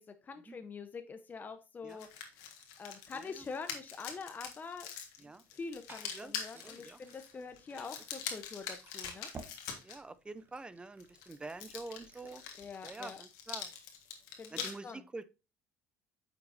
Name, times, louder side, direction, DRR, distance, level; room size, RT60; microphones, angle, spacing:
voice 1, 0.0-2.1 2.8-4.9 5.2-9.3 12.6-13.2 14.4-15.0, left 4 dB, 30° left, 0.8 m, -45 dB
sound 1, 1.9-10.0 11.0-14.7, left 8 dB, 85° left, 1.6 m, -44 dB
voice 2, 3.1-3.4 5.2-5.5 6.1-6.3 6.6-7.0 7.7-7.9 9.8-12.4 12.8-13.7 14.5-15.3, right 3 dB, 15° right, 0.6 m, -46 dB
Liquid, 5.4-12.5, right 4 dB, 35° right, 1.4 m, -57 dB
8.7 x 6.1 x 2.7 m
supercardioid pair, 90°, 6 cm